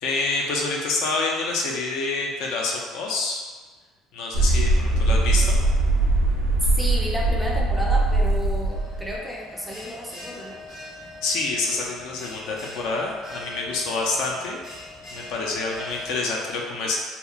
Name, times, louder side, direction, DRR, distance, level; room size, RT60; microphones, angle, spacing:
voice 1, 0.0-3.4 4.1-5.6 11.2-14.6 15.1-17.0, left 3 dB, 75° left, -1 dB, 0.4 m, -27 dB
sound 1, 4.3-9.2, right 2 dB, 80° right, 0.4 m, -21 dB
voice 2, 6.8-10.6, equal, 5° right, -3 dB, 0.4 m, -32 dB
Bell, 8.7-16.2, left 2 dB, 45° left, 0.9 m, -42 dB
2.8 x 2.1 x 2.3 m, 1.4 s
cardioid pair, 135°, 0 cm